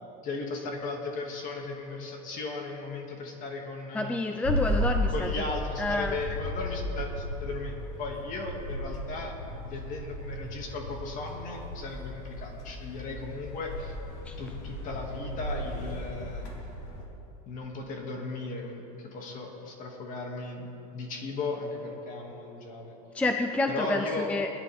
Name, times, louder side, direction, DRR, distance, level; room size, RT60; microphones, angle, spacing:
voice 1, 0.0-4.1 5.1-9.3 9.6-14.0 14.4-16.5 17.5-22.9 23.7-24.3, left 3 dB, 40° left, 1 dB, 2.4 m, -36 dB
voice 2, 3.9-5.3 5.8-6.2 14.3-14.4 23.1-24.5, left 2 dB, 5° left, 5 dB, 0.5 m, -29 dB
sound 1, 4.4-17.1, equal, 60° left, 3.5 m, -35 dB
21.5 x 11.0 x 3.6 m, 3.0 s
supercardioid pair, 135°, 20 cm